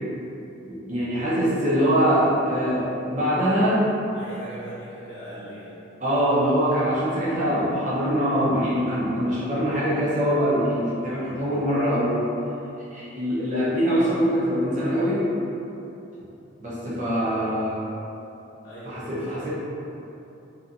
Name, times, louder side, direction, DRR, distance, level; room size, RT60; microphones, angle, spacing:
voice 1, 0.7-2.8 3.1-3.8 6.0-12.3 12.9-15.2 16.6-17.8 18.8-19.5, equal, 40° right, -9 dB, 0.8 m, -23 dB
voice 2, 4.1-5.7 18.6-19.5, right 1 dB, 55° left, -12 dB, 0.7 m, -40 dB
3.1 x 2.8 x 2.6 m, 2.9 s
head